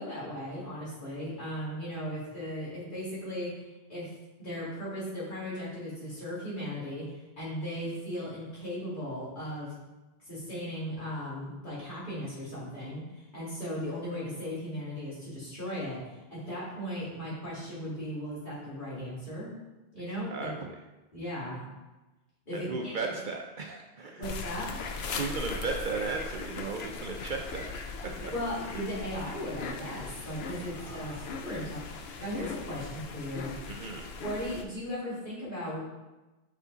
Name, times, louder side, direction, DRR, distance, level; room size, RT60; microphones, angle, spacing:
voice 1, 0.0-3.5 3.9-4.1 4.4-9.7 10.2-19.5 19.9-20.6 21.1-21.7 22.5-22.9 24.1-24.8 28.2-33.6 34.2-35.8, equal, 50° left, -9 dB, 2.5 m, -37 dB
voice 2, 20.3-20.7 22.5-24.3 25.1-27.7 30.7-31.3 33.7-34.1, right 4 dB, 60° right, 2 dB, 0.6 m, -36 dB
sound 1, 24.2-34.6, left 4 dB, 75° left, 0.9 m, -39 dB
5.4 x 4.9 x 3.9 m, 1.1 s
omnidirectional pair, 1.1 m